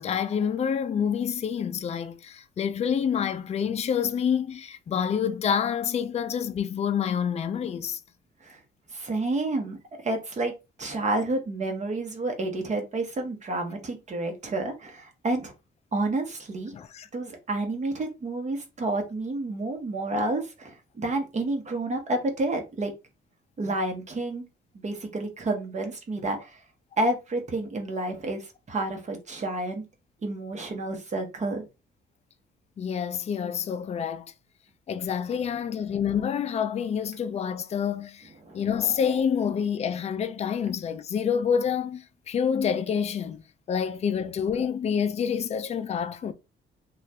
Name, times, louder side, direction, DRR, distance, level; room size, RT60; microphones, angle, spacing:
voice 1, 0.0-8.0 10.9-11.0 16.7-17.1 32.8-34.2 34.9-38.3 38.5-43.4 43.7-46.3, left 7 dB, 35° left, 0.4 m, -27 dB
voice 2, 8.9-9.8 10.0-10.5 10.8-15.5 15.9-16.7 17.1-22.9 23.6-24.4 24.8-26.6 27.0-29.8 30.2-31.6 38.4-38.5, right 2 dB, 35° right, 1.0 m, -30 dB
2.5 x 2.4 x 3.3 m
cardioid pair, 90°, 20 cm